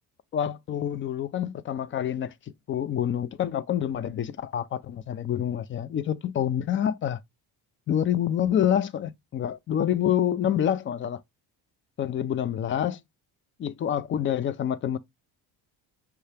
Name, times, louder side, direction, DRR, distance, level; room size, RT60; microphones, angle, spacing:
voice 1, 0.3-2.3 2.7-7.2 7.9-11.2 12.0-13.0 13.6-15.0, left 10 dB, 30° left, 0.4 m, -27 dB
5.7 x 2.8 x 3.3 m
cardioid pair, 135°, 40 cm